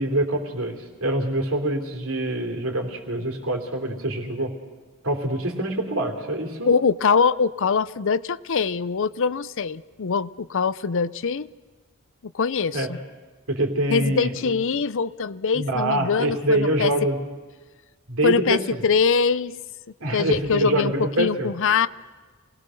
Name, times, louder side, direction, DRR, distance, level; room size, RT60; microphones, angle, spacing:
voice 1, 0.0-4.5 5.0-6.7 12.7-12.9 13.5-14.5 15.5-17.2 18.1-18.8 20.0-21.5, right 1 dB, 70° right, 3 dB, 3.4 m, -25 dB
voice 2, 6.7-11.5 12.3-13.0 13.9-16.9 18.2-19.6 20.1-21.9, left 5 dB, 65° left, 17 dB, 0.6 m, -23 dB
28.0 x 19.5 x 6.4 m, 1.4 s
head